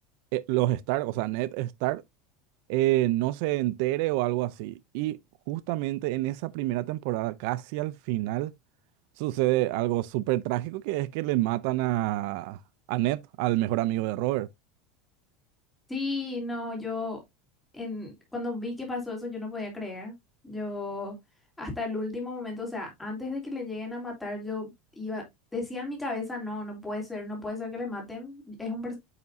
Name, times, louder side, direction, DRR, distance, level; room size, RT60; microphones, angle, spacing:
voice 1, 0.3-2.0 2.7-5.2 5.5-8.5 9.2-12.6 12.9-14.5, right 17 dB, 60° right, 0.4 m, -27 dB
voice 2, 15.9-17.2 17.7-20.1 20.4-21.1 21.6-24.7 25.0-25.2 25.5-29.0, left 3 dB, 5° left, 3.0 m, -34 dB
9.1 x 5.6 x 2.6 m
supercardioid pair, 165°, 0 cm